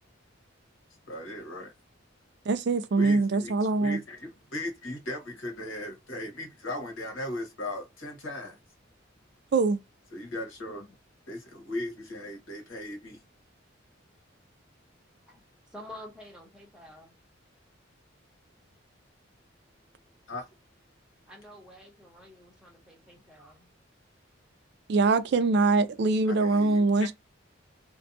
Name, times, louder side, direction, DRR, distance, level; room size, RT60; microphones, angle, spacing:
voice 1, 1.1-1.7 3.0-3.5 3.8-8.6 10.1-10.9 11.3-13.2 20.3-20.4 26.3-27.1, left 1 dB, 80° left, 1.2 m, -37 dB
voice 2, 2.5-4.0 9.5-9.8 24.9-27.1, right 3 dB, 55° right, 0.3 m, -23 dB
voice 3, 15.7-17.1 21.3-23.7, left 1 dB, 5° right, 0.9 m, -48 dB
2.6 x 2.2 x 2.6 m
head